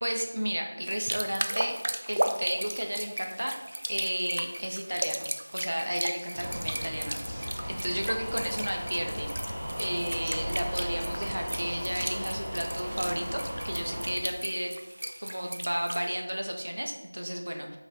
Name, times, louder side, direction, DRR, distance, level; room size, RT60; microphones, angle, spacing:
voice 1, 0.0-1.8 2.1-3.6 3.9-9.3 9.8-14.7 15.2-17.8, equal, 85° right, 3 dB, 1.4 m, -33 dB
sound 1, 0.9-16.1, right 1 dB, 60° right, 0.7 m, -36 dB
sound 2, 6.3-14.1, equal, 10° right, 1.7 m, -36 dB
5.7 x 5.5 x 4.0 m, 1.1 s
figure-of-eight pair, 175°, 0 cm